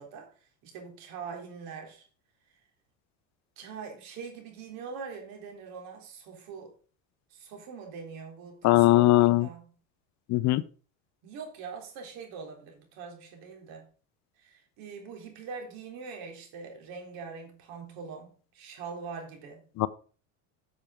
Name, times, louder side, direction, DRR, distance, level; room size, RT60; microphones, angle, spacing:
voice 1, 0.0-2.1 3.6-6.7 7.3-9.7 11.2-13.9 14.4-19.6, right 5 dB, 70° right, 3.9 m, -43 dB
voice 2, 8.6-9.5 10.3-10.6 19.8-19.9, left 17 dB, 50° left, 0.7 m, -20 dB
8.6 x 7.2 x 5.0 m
supercardioid pair, 115°, 37 cm